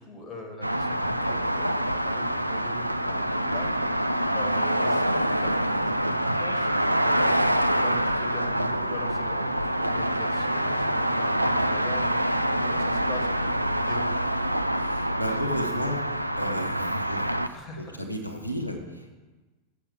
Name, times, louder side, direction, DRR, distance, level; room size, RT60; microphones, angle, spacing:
voice 1, 0.0-13.3 13.5-14.3 17.5-18.0, left 1 dB, 20° left, 3 dB, 1.7 m, -42 dB
sound 1, 0.6-17.5, right 1 dB, 90° right, 0.3 m, -26 dB
voice 2, 14.7-19.1, equal, 90° left, 1 dB, 0.9 m, -34 dB
7.0 x 6.9 x 6.5 m, 1.3 s
figure-of-eight pair, 90°, 0 cm